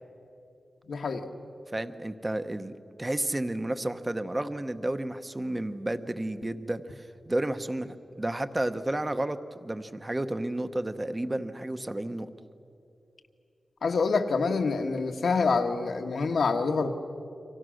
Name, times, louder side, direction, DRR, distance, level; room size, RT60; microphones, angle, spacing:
voice 1, 0.9-1.3 13.8-16.9, left 4 dB, 80° left, 4 dB, 1.6 m, -26 dB
voice 2, 1.7-2.7 3.0-12.3, right 1 dB, 20° right, 10 dB, 0.8 m, -31 dB
29.5 x 25.5 x 6.4 m, 2.7 s
wide cardioid pair, 155°, 0 cm